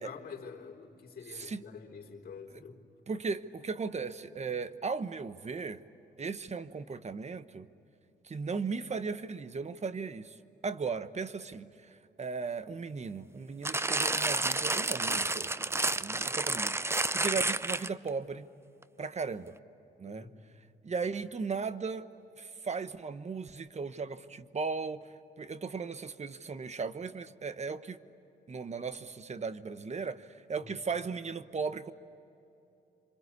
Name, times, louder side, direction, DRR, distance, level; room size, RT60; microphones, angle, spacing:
voice 1, 0.0-2.8 20.0-20.3 30.6-30.7, left 5 dB, 60° left, 1 dB, 4.0 m, -47 dB
voice 2, 1.3-1.6 2.5-2.6 3.1-5.8 6.2-7.7 8.2-10.4 10.6-11.9 12.2-18.5 19.0-19.5 20.0-20.3 20.8-22.1 22.4-25.1 25.4-28.0 28.5-31.9, right 4 dB, 40° right, 12 dB, 1.2 m, -37 dB
sound 1, 13.7-18.1 18.8-18.9, right 2 dB, 15° right, 0.6 m, -30 dB
27.5 x 25.5 x 8.4 m, 2.8 s
cardioid pair, 85°, 18 cm